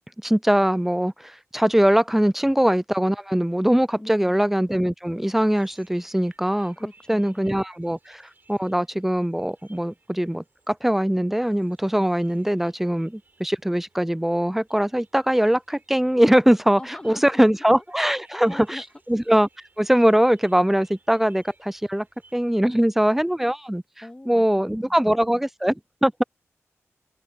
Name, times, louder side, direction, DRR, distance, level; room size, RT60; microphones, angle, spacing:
voice 1, 0.2-6.8 7.1-16.8 17.0-18.8 19.1-19.5 19.8-22.1 22.3-23.8 24.3-26.2, equal, 5° right, 0.3 m, -21 dB
voice 2, 4.0-4.4 6.8-7.5 16.8-17.5 18.3-18.8 24.0-25.0, left 1 dB, 15° left, 2.4 m, -41 dB
sound 1, 5.5-22.5, right 3 dB, 40° right, 5.3 m, -61 dB
wide cardioid pair, 95°, 5 cm